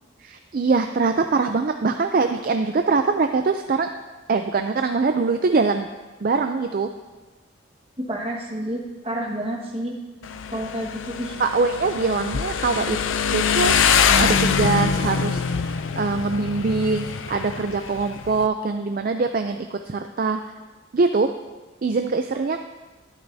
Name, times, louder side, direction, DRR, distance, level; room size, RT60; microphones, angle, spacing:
voice 1, 0.2-3.9 4.3-5.9 6.2-6.9 11.4-13.0 13.3-13.7 14.2-20.4 20.9-21.3 21.8-22.6, right 4 dB, 45° right, 6 dB, 0.4 m, -23 dB
voice 2, 8.0-10.0 10.5-11.3, right 1 dB, 30° right, -2 dB, 1.5 m, -29 dB
Motorcycle, 10.2-18.5, left 6 dB, 80° left, 0.5 m, -24 dB
13.0 x 11.0 x 2.7 m, 1.2 s
head